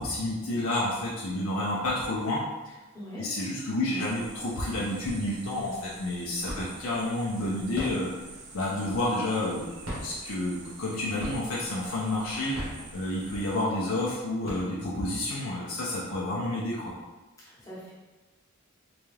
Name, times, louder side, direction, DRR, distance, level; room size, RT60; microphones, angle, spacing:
voice 1, 0.0-2.8 3.2-8.1 8.5-9.7 10.0-12.6 12.9-16.9, left 1 dB, 75° left, -6 dB, 0.6 m, -30 dB
sound 1, 4.0-13.6, right 3 dB, 55° right, 0.5 m, -47 dB
sound 2, 5.1-5.6 5.9-6.9 7.6-9.3 9.7-10.9 11.2-11.7 12.3-13.4 13.9-14.0 14.3-15.2, equal, 85° right, 1.2 m, -38 dB
voice 2, 17.4-17.9, equal, 15° left, -8 dB, 1.1 m, -43 dB
3.8 x 2.3 x 3.2 m, 1.2 s
head